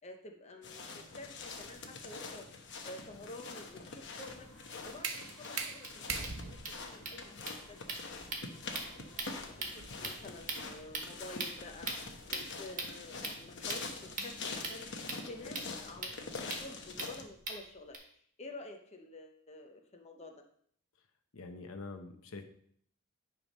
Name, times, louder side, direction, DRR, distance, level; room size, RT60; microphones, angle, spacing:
voice 1, 0.0-2.5 2.8-4.5 4.8-7.3 7.7-8.3 8.8-16.1 16.6-18.0 18.4-20.4, left 2 dB, 30° left, 3 dB, 0.8 m, -50 dB
sound 1, 0.6-17.3, left 4 dB, 60° left, 1.0 m, -45 dB
sound 2, 4.3-10.1, right 5 dB, 70° right, 0.9 m, -43 dB
sound 3, 4.7-4.8 5.1-5.2 5.4-5.5 5.7-18.0, right 3 dB, 40° right, 1.4 m, -43 dB
voice 2, 21.3-22.4, left 3 dB, 80° left, 6 dB, 0.8 m, -45 dB
10.0 x 3.5 x 5.3 m, 0.63 s
head